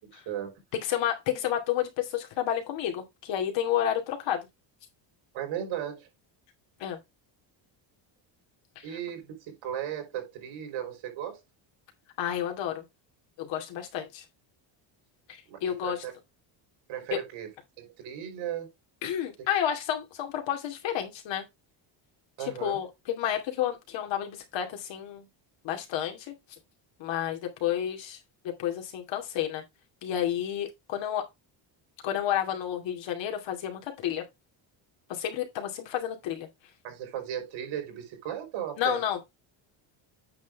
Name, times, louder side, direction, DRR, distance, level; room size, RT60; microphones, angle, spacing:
voice 1, 0.0-0.5 5.3-6.1 8.8-11.4 15.5-16.1 16.9-17.5 17.8-18.7 22.4-22.8 36.8-39.0, right 10 dB, 75° right, 4.4 m, -36 dB
voice 2, 0.7-4.5 6.8-7.0 8.8-8.9 12.2-12.8 13.4-14.2 15.3-16.0 17.1-17.2 19.0-21.4 22.4-25.3 25.6-26.3 27.0-28.2 28.4-29.6 30.0-31.3 32.0-34.3 35.1-36.5 38.8-39.3, left 10 dB, 70° left, 2.5 m, -30 dB
8.6 x 6.1 x 3.4 m
cardioid pair, 165°, 46 cm